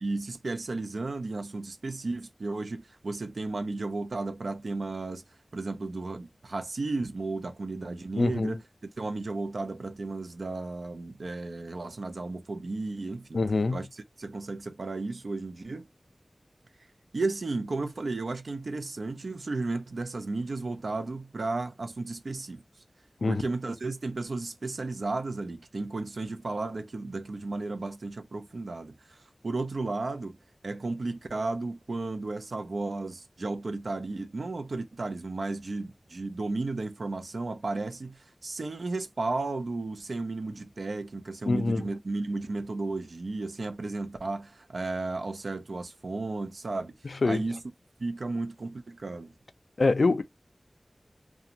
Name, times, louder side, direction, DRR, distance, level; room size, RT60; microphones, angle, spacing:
voice 1, 0.0-8.6 9.0-13.4 13.7-15.9 17.1-22.6 23.3-29.2 29.4-30.4 30.6-46.9 47.2-47.6 48.0-49.3, right 3 dB, 90° right, 0.4 m, -34 dB
voice 2, 8.2-8.5 13.3-13.8 23.2-23.4 41.5-41.8 47.2-47.4 49.8-50.2, left 3 dB, 90° left, 0.3 m, -24 dB
2.5 x 2.1 x 2.7 m
wide cardioid pair, 70°, 0 cm